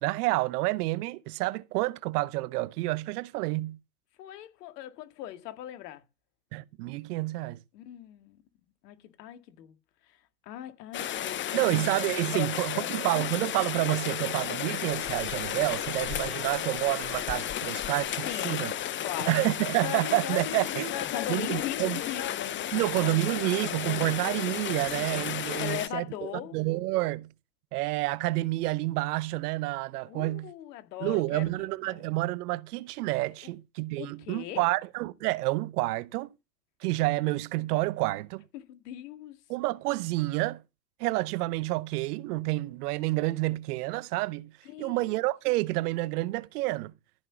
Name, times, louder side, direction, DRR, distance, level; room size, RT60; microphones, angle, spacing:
voice 1, 0.0-3.8 6.5-7.6 11.5-18.7 19.2-20.9 21.3-22.0 22.7-26.1 26.5-27.3 27.7-30.5 31.0-36.3 36.8-38.4 39.5-40.6 41.0-44.5 44.8-46.9, right 20 dB, 65° right, 0.8 m, -29 dB
voice 2, 4.2-6.0 7.7-8.4 8.8-9.8 10.0-11.8 12.3-13.3 18.2-18.7 19.0-19.4 20.9-22.4 25.6-26.6 30.1-32.1 33.4-33.5 34.0-34.7 38.5-39.4 44.6-45.1, left 12 dB, 70° left, 2.2 m, -40 dB
Rain, 10.9-25.9, left 10 dB, 25° left, 0.7 m, -33 dB
sound 1, 17.3-25.8, left 12 dB, 40° left, 1.4 m, -41 dB
14.0 x 5.9 x 7.0 m
hypercardioid pair, 95°, 50 cm